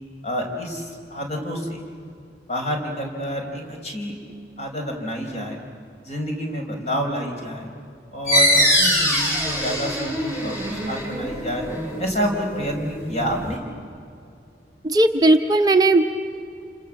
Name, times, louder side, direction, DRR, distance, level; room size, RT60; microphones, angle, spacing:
voice 1, 0.2-1.8 2.5-4.2 4.6-5.6 6.0-7.7 8.1-11.6 12.0-13.6, equal, 40° left, 2 dB, 4.6 m, -28 dB
sound 1, 8.3-13.5, equal, 20° left, 7.7 m, -23 dB
voice 2, 14.8-16.0, right 2 dB, 20° right, 5 dB, 0.8 m, -16 dB
28.5 x 27.0 x 7.5 m, 2.4 s
head